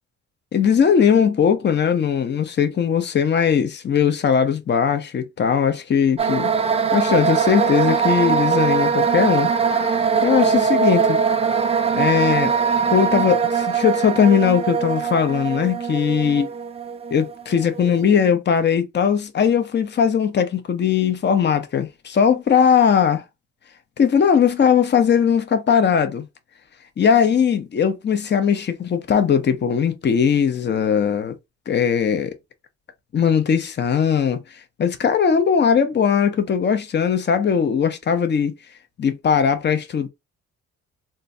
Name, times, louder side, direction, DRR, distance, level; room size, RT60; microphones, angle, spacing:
voice 1, 0.5-6.5 6.9-11.2 11.9-12.5 12.9-16.5 17.1-23.2 24.0-26.3 27.0-31.4 31.7-32.3 33.1-34.4 34.8-38.6 39.0-40.1, left 7 dB, 35° left, 0.7 m, -19 dB
sound 1, 6.2-18.1, right 6 dB, 20° right, 0.4 m, -21 dB
3.7 x 2.2 x 2.6 m
cardioid pair, 90°, 30 cm